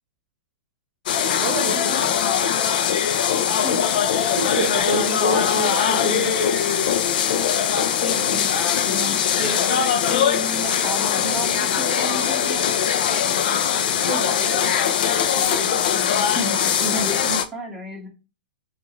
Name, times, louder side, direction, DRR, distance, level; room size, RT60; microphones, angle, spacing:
sound 1, 1.1-17.5, left 8 dB, 60° left, 0.6 m, -21 dB
voice 1, 1.4-2.0 4.3-6.9 14.1-14.8 15.1-15.8, right 3 dB, 35° right, 4 dB, 1.1 m, -29 dB
voice 2, 7.6-8.5 8.9-12.7 15.9-18.1, equal, 5° right, -3 dB, 1.4 m, -32 dB
6.8 x 2.5 x 3.0 m, 0.30 s
hypercardioid pair, 145°, 6 cm